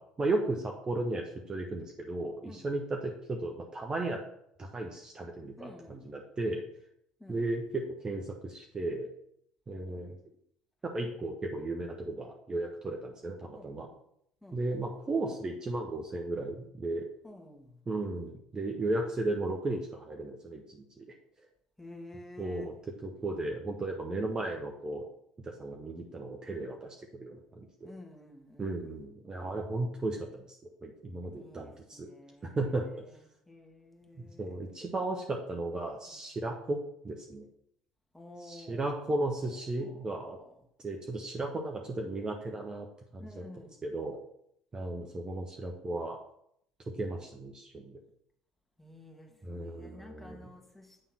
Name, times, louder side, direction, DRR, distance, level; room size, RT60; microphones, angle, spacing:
voice 1, 0.2-4.2 4.6-6.6 7.3-9.1 9.7-10.1 10.8-13.9 14.5-17.1 17.9-21.1 22.4-22.7 23.0-25.0 25.4-27.9 28.6-30.5 30.8-32.1 32.4-33.0 34.2-36.8 37.0-37.4 38.4-40.4 40.8-42.9 43.1-43.4 43.8-44.2 44.7-46.2 46.9-48.0 49.4-50.5, right 2 dB, 25° right, 1 dB, 1.2 m, -35 dB
voice 2, 2.4-2.8 5.6-6.1 7.2-7.5 13.5-14.0 14.4-14.6 17.2-17.8 21.8-22.7 27.8-28.8 31.4-32.9 33.5-34.6 36.1-36.2 38.1-40.5 43.2-43.8 48.8-51.0, left 1 dB, 5° left, 2 dB, 1.9 m, -51 dB
8.9 x 3.7 x 6.1 m, 0.72 s
hypercardioid pair, 65°, 3 cm